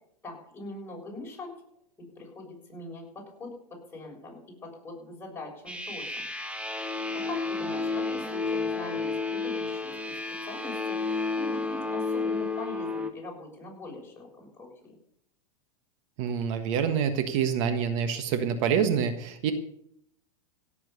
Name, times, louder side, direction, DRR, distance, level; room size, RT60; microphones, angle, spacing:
voice 1, 0.2-1.5 2.2-3.5 3.9-6.2 7.1-10.2 10.5-11.0 11.3-14.9, left 2 dB, 10° left, -2 dB, 6.4 m, -42 dB
sound 1, 5.7-13.1, left 3 dB, 5° right, 1.5 m, -31 dB
voice 2, 16.2-19.5, right 7 dB, 55° right, 8 dB, 1.5 m, -26 dB
16.5 x 7.4 x 6.9 m, 0.73 s
hypercardioid pair, 105°, 19 cm